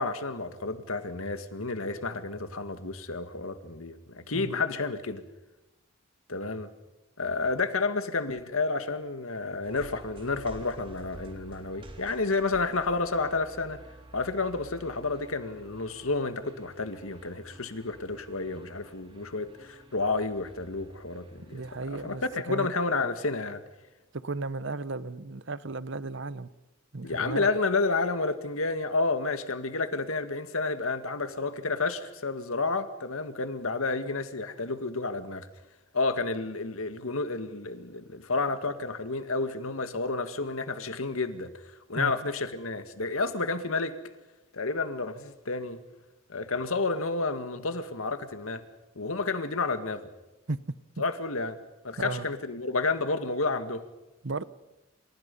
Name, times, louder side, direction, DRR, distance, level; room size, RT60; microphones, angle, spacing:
voice 1, 0.0-5.2 6.3-6.7 7.2-13.8 14.1-21.6 21.9-23.6 27.0-35.5 35.9-41.5 41.9-44.0 44.5-45.8 46.3-48.6 49.0-50.1 51.0-51.6 51.8-53.8, left 3 dB, 85° left, 2.0 m, -30 dB
sound 1, 9.6-22.4, right 1 dB, 25° right, 3.4 m, -51 dB
voice 2, 21.5-22.2 22.5-22.7 24.1-26.5 26.9-27.5 41.9-42.1 50.5-50.6 52.0-52.3 54.2-54.4, right 3 dB, 60° right, 1.0 m, -34 dB
29.0 x 27.5 x 5.5 m
head